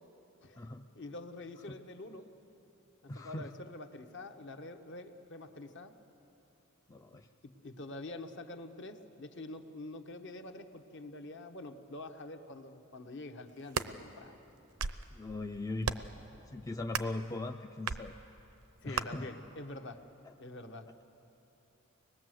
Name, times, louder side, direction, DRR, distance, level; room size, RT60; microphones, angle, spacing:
voice 1, 0.4-2.3 3.0-5.9 7.4-14.3 18.8-20.0 20.4-20.9, left 2 dB, 55° left, 6 dB, 1.2 m, -46 dB
voice 2, 3.1-3.5 6.9-7.3 15.1-15.9 16.5-18.1 18.8-19.3, left 2 dB, 15° left, 5 dB, 0.4 m, -39 dB
sound 1, 13.5-13.9 14.6-15.1 15.8-16.2 16.9-17.2 17.9-18.0 18.9-19.1, right 6 dB, 80° right, 0.7 m, -35 dB
25.5 x 20.0 x 7.7 m, 3.0 s
head